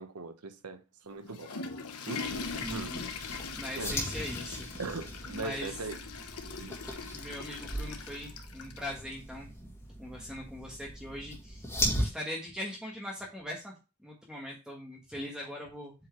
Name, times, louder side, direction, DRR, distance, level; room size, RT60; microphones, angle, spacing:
voice 1, 0.0-1.5 2.1-2.9 3.8-4.0 4.8-5.9 6.6-6.8, right 3 dB, 90° right, 1.0 m, -40 dB
Water / Toilet flush, 1.1-8.9, left 4 dB, 85° left, 1.1 m, -41 dB
sound 1, 2.2-12.1, equal, 10° left, 2.0 m, -38 dB
voice 2, 2.5-3.0 3.5-4.7 5.3-5.8 7.1-9.5 10.0-15.9, left 1 dB, 5° right, 1.3 m, -41 dB
7.9 x 4.6 x 3.1 m
head